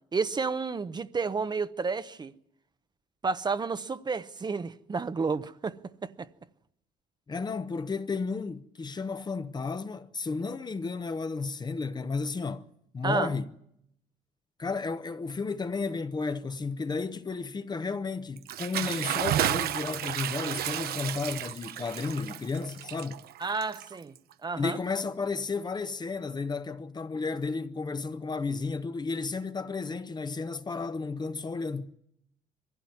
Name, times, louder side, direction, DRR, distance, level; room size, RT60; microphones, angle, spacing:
voice 1, 0.1-2.3 3.2-5.7 6.0-6.3 13.0-13.3 23.4-24.1 24.4-24.8, right 4 dB, 25° right, 0.8 m, -31 dB
voice 2, 7.3-12.7 12.9-13.5 14.6-23.2 24.6-31.9, left 4 dB, 25° left, 0.9 m, -33 dB
Bathtub (filling or washing) / Splash splatter, 18.4-24.3, right 12 dB, 65° right, 0.9 m, -32 dB
22.5 x 16.0 x 9.5 m
cardioid pair, 110°, 17 cm